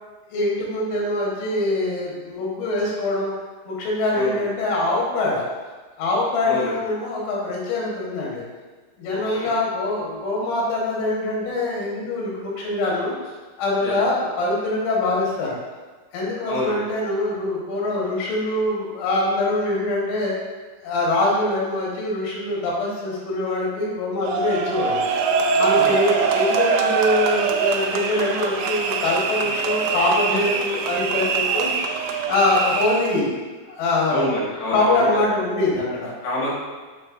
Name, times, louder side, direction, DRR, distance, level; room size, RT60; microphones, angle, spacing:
voice 1, 0.3-3.3 3.7-5.5 6.0-8.4 9.0-13.1 13.6-15.6 16.1-20.4 20.8-25.0 25.6-31.7 32.3-33.3 33.7-34.3 34.7-36.1, left 2 dB, 90° left, -4 dB, 4.0 m, -23 dB
voice 2, 4.1-4.4 6.4-6.8 9.1-9.5 13.8-13.9 16.5-16.8 25.7-26.2 34.1-35.2 36.2-36.5, left 1 dB, 70° left, -7 dB, 3.6 m, -28 dB
sound 1, 24.2-33.2, right 5 dB, 85° right, 2.4 m, -23 dB
9.8 x 4.0 x 2.6 m, 1.4 s
omnidirectional pair, 5.3 m